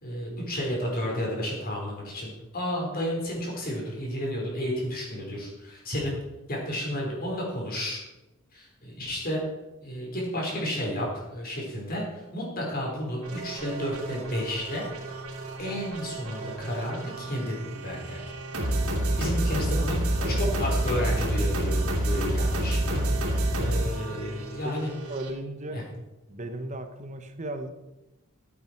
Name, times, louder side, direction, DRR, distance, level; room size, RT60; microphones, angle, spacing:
voice 1, 0.0-6.2 6.5-8.0 8.5-9.4 9.8-14.9 15.6-18.2 18.6-20.0 20.2-24.9 25.7-25.8, equal, 45° left, -2 dB, 4.5 m, -32 dB
sound 1, 13.2-25.3, right 1 dB, 85° right, 2.8 m, -29 dB
voice 2, 19.5-19.9 20.2-20.6 24.5-25.8 26.3-27.7, right 1 dB, 35° right, 8 dB, 1.1 m, -37 dB
15.0 x 8.7 x 4.6 m, 1.0 s
head